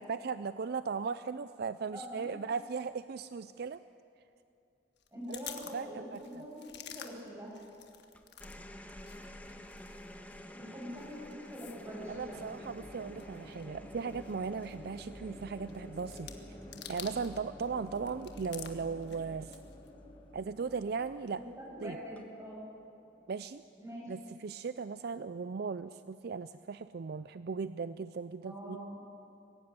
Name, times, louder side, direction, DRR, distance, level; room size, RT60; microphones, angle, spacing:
voice 1, 0.0-3.8 5.3-5.4 5.7-6.4 12.1-16.6 16.9-19.6 20.3-21.4 21.8-22.0 23.3-23.6 24.1-28.8, right 5 dB, 55° right, 13 dB, 0.4 m, -37 dB
voice 2, 1.9-2.3 5.1-7.5 10.5-12.4 21.3-22.6 23.8-24.1 28.4-29.0, equal, 15° right, -4 dB, 7.7 m, -44 dB
sound 1, 5.0-8.6 8.8-17.5 17.8-19.9, left 9 dB, 60° left, 1.6 m, -51 dB
sound 2, 8.1-20.8 22.0-22.4, equal, 10° left, 1.3 m, -51 dB
sound 3, 12.0-23.8, left 1 dB, 25° left, 3.3 m, -52 dB
22.5 x 15.5 x 9.6 m, 2.6 s
head